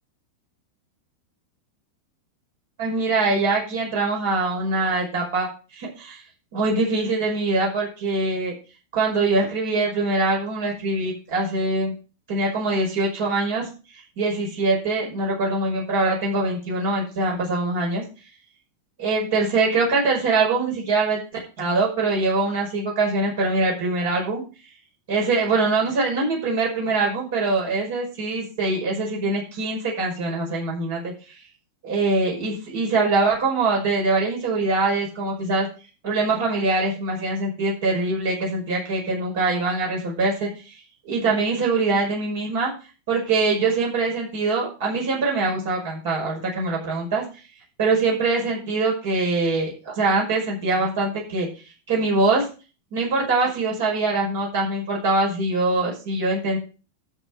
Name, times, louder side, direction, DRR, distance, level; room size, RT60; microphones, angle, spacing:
voice 1, 2.8-6.2 6.5-8.5 8.9-11.9 12.3-13.7 13.9-18.0 19.0-21.2 21.6-24.4 25.1-31.4 31.8-35.7 36.0-42.7 43.1-47.2 47.8-51.5 51.9-52.5 52.9-56.6, right 3 dB, 55° right, -2 dB, 5.5 m, -23 dB
11.0 x 8.1 x 4.7 m, 0.33 s
figure-of-eight pair, 90°, 0 cm